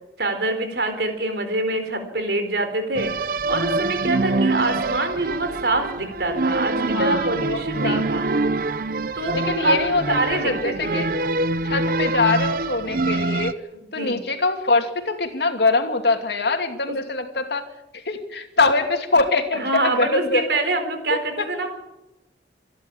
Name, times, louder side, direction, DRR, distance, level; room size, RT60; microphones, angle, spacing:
voice 1, 0.2-3.1 3.5-8.3 9.1-9.8 10.1-11.1 14.0-14.2 16.9-17.0 19.5-21.7, right 2 dB, 70° right, 7 dB, 4.3 m, -25 dB
sound 1, 3.0-13.5, right 2 dB, 50° right, 0.7 m, -25 dB
voice 2, 6.9-8.0 9.3-11.1 11.6-13.5 13.9-17.7 17.9-20.4 21.1-21.5, left 3 dB, 70° left, 5 dB, 2.7 m, -23 dB
27.0 x 11.5 x 8.8 m, 0.96 s
head